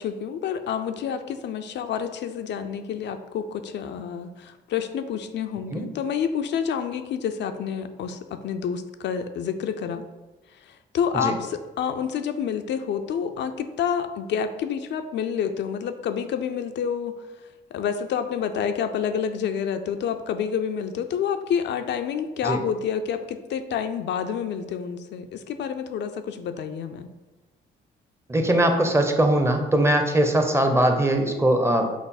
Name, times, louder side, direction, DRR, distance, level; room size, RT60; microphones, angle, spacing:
voice 1, 0.0-10.0 10.6-17.1 17.7-27.1, left 7 dB, 65° left, 8 dB, 0.4 m, -28 dB
voice 2, 28.3-31.9, right 1 dB, 15° right, 5 dB, 0.6 m, -21 dB
5.8 x 2.0 x 4.0 m, 1.1 s
cardioid pair, 90°, 20 cm